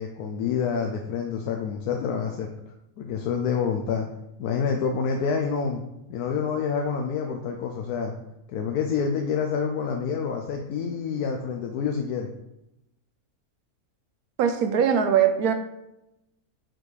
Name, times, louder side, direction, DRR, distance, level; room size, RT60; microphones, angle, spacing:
voice 1, 0.0-2.5 3.0-4.1 4.4-5.8 6.1-8.1 8.5-12.3, left 6 dB, 90° left, 3 dB, 1.1 m, -27 dB
voice 2, 14.4-15.5, right 8 dB, 80° right, 8 dB, 1.2 m, -21 dB
5.8 x 5.1 x 3.2 m, 0.88 s
omnidirectional pair, 1.6 m